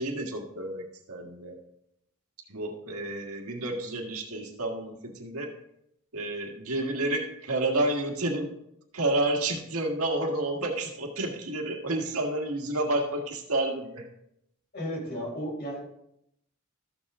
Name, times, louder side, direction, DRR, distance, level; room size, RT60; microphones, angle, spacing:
voice 1, 0.0-1.6 2.5-5.5 6.1-8.5 8.9-14.1, right 2 dB, 85° right, 1 dB, 1.7 m, -30 dB
voice 2, 14.7-15.8, equal, 45° left, -2 dB, 4.2 m, -34 dB
14.0 x 7.2 x 3.7 m, 0.76 s
head